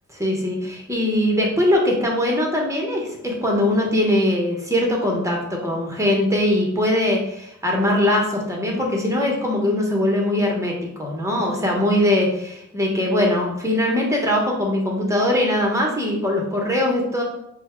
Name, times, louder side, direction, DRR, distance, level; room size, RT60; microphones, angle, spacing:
voice 1, 0.1-0.6 0.9-17.2, left 1 dB, 10° right, -1 dB, 1.1 m, -21 dB
4.2 x 2.3 x 4.5 m, 0.78 s
wide cardioid pair, 85°, 30 cm